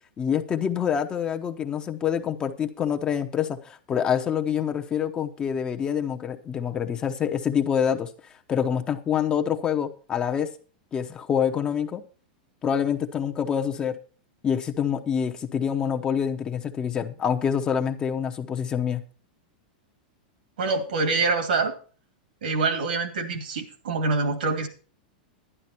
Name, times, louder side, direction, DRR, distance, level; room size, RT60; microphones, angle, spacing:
voice 1, 0.2-8.1 8.5-10.5 10.9-12.0 12.6-14.0 14.4-19.0, left 8 dB, 20° left, 5 dB, 0.9 m, -26 dB
voice 2, 20.6-21.7 22.4-24.7, right 3 dB, 85° right, 7 dB, 2.7 m, -25 dB
11.0 x 11.0 x 4.4 m, 0.40 s
supercardioid pair, 155°, 5 cm